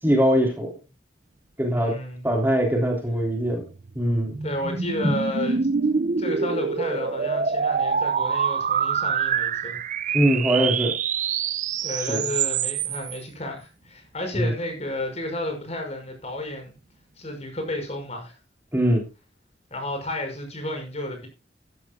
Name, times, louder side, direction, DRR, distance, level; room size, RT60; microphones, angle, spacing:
voice 1, 0.0-0.8 1.6-2.0 2.2-3.6 3.9-4.4 5.0-5.1 10.1-11.0 12.1-12.3 14.3-14.5 18.7-19.1, equal, 10° right, 3.3 m, -22 dB
voice 2, 1.7-2.2 4.4-5.7 6.2-9.8 11.8-16.7 17.2-18.3 19.7-21.3, left 1 dB, 35° left, 5.7 m, -32 dB
sound 1, 3.4-13.2, right 6 dB, 45° right, 0.5 m, -26 dB
14.0 x 13.5 x 2.4 m
head